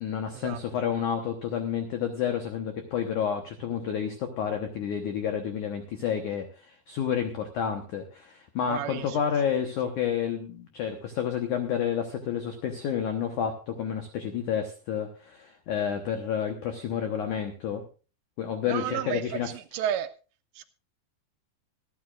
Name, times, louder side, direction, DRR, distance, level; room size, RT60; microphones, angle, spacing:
voice 1, 0.0-17.8 18.4-19.5, left 8 dB, 80° left, 5 dB, 1.8 m, -30 dB
voice 2, 8.7-9.2 18.7-20.1 20.6-20.7, right 10 dB, 80° right, 9 dB, 2.8 m, -32 dB
26.0 x 9.6 x 2.5 m, 0.34 s
omnidirectional pair, 5.3 m